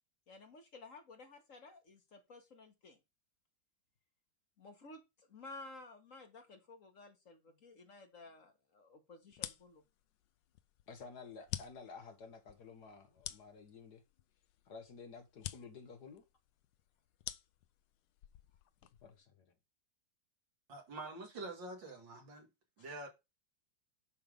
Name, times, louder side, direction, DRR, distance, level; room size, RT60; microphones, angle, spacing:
voice 1, 0.3-3.0 4.6-9.8, left 3 dB, 45° left, 1.8 m, -54 dB
sound 1, 9.3-19.2, left 14 dB, 80° left, 1.3 m, -49 dB
voice 2, 10.9-14.0 14.7-16.2 19.0-19.5, left 5 dB, 60° left, 1.9 m, -52 dB
voice 3, 20.7-22.5 22.8-23.1, right 2 dB, 85° right, 2.9 m, -46 dB
10.5 x 3.6 x 5.2 m
omnidirectional pair, 2.0 m